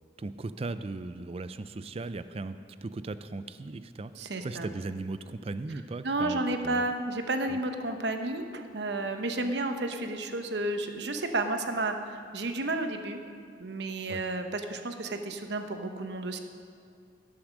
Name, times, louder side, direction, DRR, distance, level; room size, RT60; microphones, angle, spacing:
voice 1, 0.2-2.6 2.8-6.9 7.5-7.6 14.1-14.2, right 3 dB, 30° right, 12 dB, 0.4 m, -37 dB
voice 2, 4.1-4.7 6.0-13.2 13.6-16.4, right 2 dB, 65° right, 6 dB, 0.9 m, -32 dB
16.0 x 7.1 x 6.4 m, 2.3 s
head